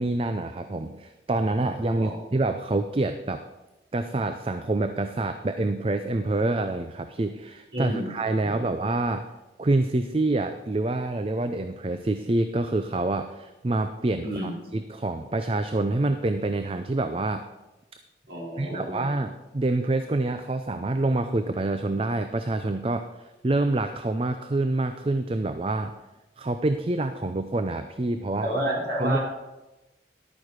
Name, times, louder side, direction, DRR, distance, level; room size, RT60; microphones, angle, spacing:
voice 1, 0.0-3.4 3.9-9.3 9.6-17.4 18.6-25.9 26.4-28.5 29.0-29.2, right 2 dB, 30° right, 8 dB, 0.5 m, -27 dB
voice 2, 7.7-8.0 14.2-14.5 18.3-19.0 28.4-29.2, right 1 dB, 85° right, -4 dB, 4.4 m, -29 dB
12.0 x 9.0 x 4.9 m, 1.0 s
head